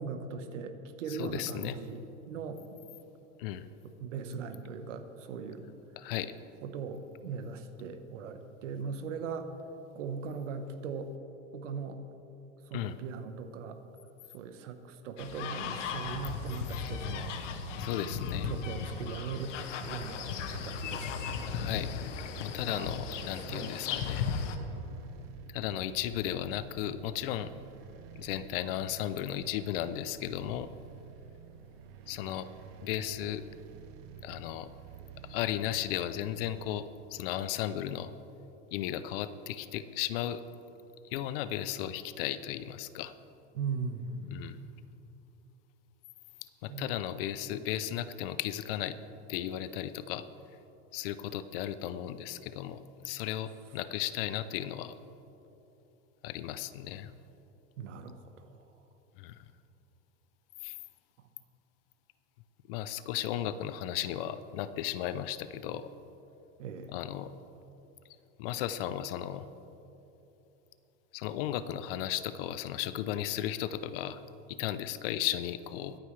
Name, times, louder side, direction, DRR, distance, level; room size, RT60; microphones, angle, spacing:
voice 1, 0.0-2.0 2.3-2.8 3.8-5.7 6.6-9.5 9.9-11.1 11.5-12.0 12.7-13.8 14.3-17.3 18.4-21.3 22.6-25.0 43.5-44.7 46.7-47.0 57.8-58.6 66.6-66.9, right 5 dB, 80° right, 8 dB, 1.3 m, -40 dB
voice 2, 1.1-1.7 3.4-3.7 6.0-6.3 12.7-13.0 17.8-18.5 20.7-21.1 21.5-21.9 22.4-24.3 25.5-27.5 28.2-30.7 32.1-32.5 32.8-33.4 34.2-34.7 35.2-38.1 38.7-40.4 41.1-43.1 44.3-44.6 46.6-49.0 49.3-50.2 50.9-54.9 56.2-57.1 59.2-59.4 60.6-60.7 62.7-65.9 66.9-67.3 68.4-69.4 71.1-74.2 74.5-76.0, left 12 dB, 50° left, 14 dB, 0.6 m, -35 dB
sound 1, 15.2-24.6, left 6 dB, 85° left, 1.2 m, -36 dB
sound 2, 16.9-36.8, right 8 dB, 45° right, 0.7 m, -50 dB
23.0 x 9.0 x 3.3 m, 3.0 s
supercardioid pair, 150°, 36 cm